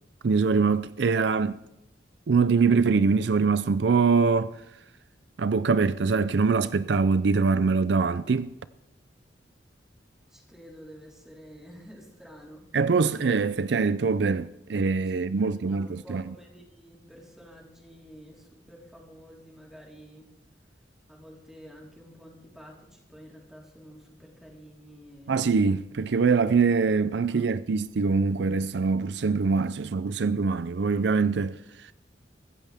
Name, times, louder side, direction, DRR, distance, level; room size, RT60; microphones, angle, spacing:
voice 1, 0.2-1.6 2.3-4.5 5.4-8.5 12.7-16.2 25.3-31.6, right 4 dB, 65° right, 0.5 m, -23 dB
voice 2, 10.3-12.6 15.1-20.3 21.1-25.4 27.3-27.5, equal, 5° right, 4.1 m, -50 dB
23.5 x 14.5 x 3.5 m
head